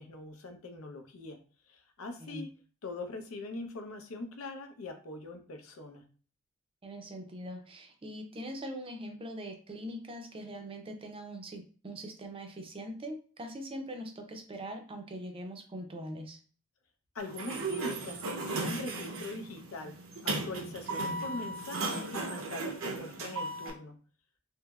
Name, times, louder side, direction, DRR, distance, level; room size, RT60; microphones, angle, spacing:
voice 1, 0.0-1.4 1.7-2.5 2.8-6.0 17.1-19.9 20.2-24.0, left 2 dB, 80° left, 6 dB, 0.6 m, -42 dB
voice 2, 6.8-16.4, equal, 25° right, 4 dB, 0.5 m, -42 dB
Sliding door, 17.2-23.7, right 3 dB, 70° right, 0.6 m, -36 dB
3.3 x 2.9 x 2.3 m, 0.40 s
head